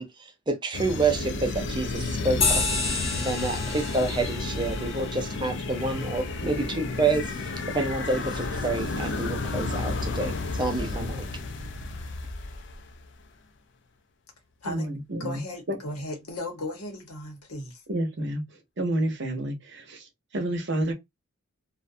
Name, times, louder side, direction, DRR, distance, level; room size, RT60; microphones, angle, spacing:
voice 1, 0.0-2.6 3.2-11.3, right 3 dB, 20° right, 0.4 m, -28 dB
sound 1, 0.7-13.1, left 3 dB, 55° left, 0.4 m, -32 dB
sound 2, 2.4-7.3, left 3 dB, 25° left, 0.8 m, -32 dB
voice 2, 14.6-15.4 15.7-15.8 17.9-18.4 18.8-20.9, right 1 dB, 55° right, 0.7 m, -29 dB
voice 3, 15.2-17.8, left 2 dB, 90° left, 1.0 m, -36 dB
2.5 x 2.2 x 2.5 m
head